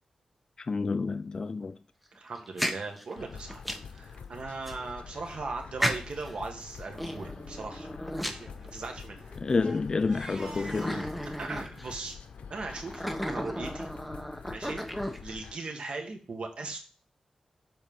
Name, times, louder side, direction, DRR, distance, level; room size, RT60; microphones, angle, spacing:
voice 1, 0.6-1.8 9.4-11.1, left 4 dB, 40° left, 0.3 m, -29 dB
voice 2, 2.1-3.6 3.9-7.9 8.2-9.2 10.5-12.1 12.5-13.9 14.5-16.8, right 3 dB, 60° right, 1.7 m, -39 dB
sound 1, 2.4-4.0 4.7-4.8 5.8-6.4 6.9-9.1 9.7-9.8 10.4-12.0 12.7-15.5, equal, ahead, 0.9 m, -34 dB
sound 2, 3.2-15.5, left 6 dB, 85° left, 0.7 m, -46 dB
Crying sobbing, 5.2-5.3 5.6-5.7 6.0-6.3 6.7-7.0 8.1-11.2, right 2 dB, 35° right, 1.4 m, -50 dB
7.5 x 4.3 x 5.5 m
wide cardioid pair, 95°, 2 cm